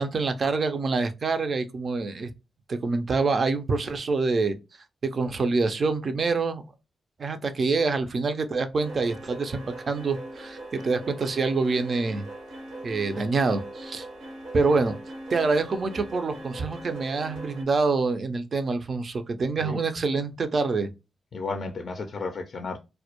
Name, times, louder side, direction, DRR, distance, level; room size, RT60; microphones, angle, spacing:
voice 1, 0.0-2.3 2.7-4.6 5.1-6.6 7.2-12.2 12.8-14.1 14.5-14.9 15.3-20.9, right 4 dB, 55° right, 0.4 m, -26 dB
sound 1, 8.8-17.6, right 1 dB, 90° right, 0.8 m, -41 dB
voice 2, 21.3-22.8, left 3 dB, 60° left, 0.4 m, -33 dB
2.1 x 2.0 x 2.8 m
supercardioid pair, 50°, 0 cm